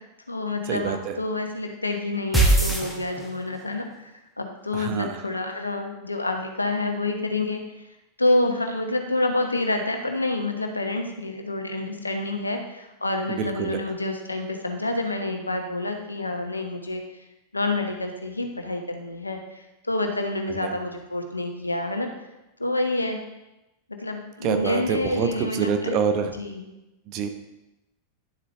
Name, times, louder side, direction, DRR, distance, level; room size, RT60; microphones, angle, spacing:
voice 1, 0.0-7.6 8.2-17.0 17.5-22.1 22.6-23.2 24.0-26.0 26.4-26.7, left 2 dB, 80° left, 4 dB, 1.1 m, -28 dB
voice 2, 0.7-1.2 4.7-5.2 13.3-13.8 20.6-20.7 24.4-26.3 27.1-27.3, right 7 dB, 40° right, 7 dB, 1.0 m, -26 dB
sound 1, 2.3-3.6, right 2 dB, 5° right, 1.6 m, -20 dB
11.0 x 7.6 x 3.4 m, 0.96 s
figure-of-eight pair, 90°, 0 cm